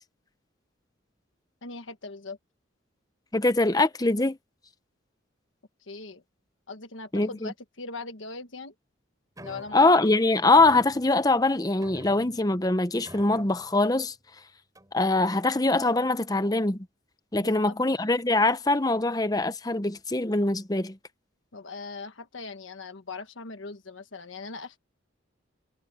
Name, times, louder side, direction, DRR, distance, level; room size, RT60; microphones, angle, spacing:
voice 1, 1.6-2.4 5.8-6.2 6.7-8.7 9.4-10.1 17.4-17.8 21.5-24.8, left 3 dB, 80° left, 1.3 m, -40 dB
voice 2, 3.3-4.4 7.1-7.5 9.7-14.1 14.9-16.9 17.3-21.0, left 2 dB, 20° left, 0.8 m, -23 dB
sound 1, 9.4-9.9 10.5-11.4 11.8-12.6 13.0-13.8 14.7-15.1, right 1 dB, 20° right, 4.6 m, -47 dB
head